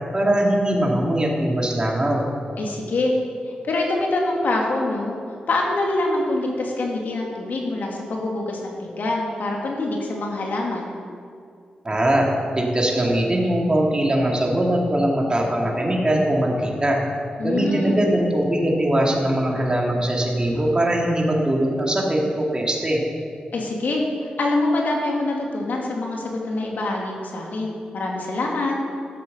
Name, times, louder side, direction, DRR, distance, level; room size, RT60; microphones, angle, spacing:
voice 1, 0.1-2.3 11.8-12.3 12.5-17.0 17.4-23.0, right 1 dB, 30° right, -1 dB, 2.6 m, -21 dB
voice 2, 2.6-3.1 3.6-5.2 5.5-10.9 17.4-18.0 23.5-24.1 24.4-28.8, left 2 dB, 70° left, -1 dB, 2.5 m, -25 dB
12.5 x 7.5 x 6.8 m, 2.3 s
cardioid pair, 55°, 3 cm